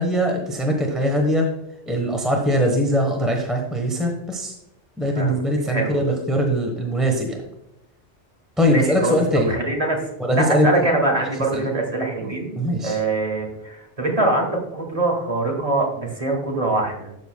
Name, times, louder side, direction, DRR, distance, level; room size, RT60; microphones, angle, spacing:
voice 1, 0.0-1.5 1.9-4.5 5.0-7.4 8.6-9.5 10.2-10.8 11.2-11.7 12.2-13.0, equal, ahead, 1 dB, 0.9 m, -21 dB
voice 2, 5.7-6.0 8.7-9.2 9.5-12.6 12.8-17.1, right 2 dB, 30° right, 0 dB, 1.9 m, -23 dB
13.0 x 6.6 x 2.2 m, 0.85 s
omnidirectional pair, 1.2 m